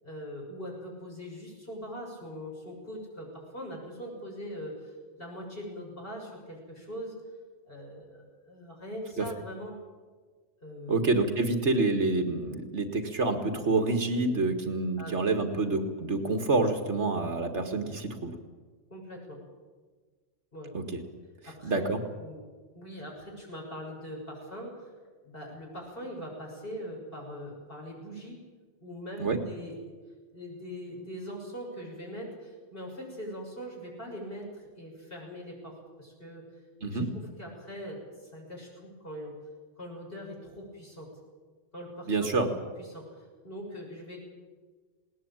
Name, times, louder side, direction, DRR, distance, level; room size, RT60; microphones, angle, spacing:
voice 1, 0.0-7.1 7.7-9.8 10.6-11.1 15.0-15.1 15.5-15.6 18.9-19.4 20.5-20.7 21.5-21.9 22.2-22.4 22.7-24.9 25.2-28.4 28.8-29.8 30.3-36.4 36.9-39.3 39.8-41.1 41.7-42.4 42.8-44.2, equal, 50° left, -2 dB, 7.1 m, -42 dB
voice 2, 10.9-18.3 20.7-21.0 21.6-22.0 29.2-29.4 36.8-37.1 42.1-42.5, right 3 dB, 70° right, 6 dB, 2.2 m, -27 dB
20.0 x 19.0 x 8.9 m, 1.4 s
omnidirectional pair, 1.2 m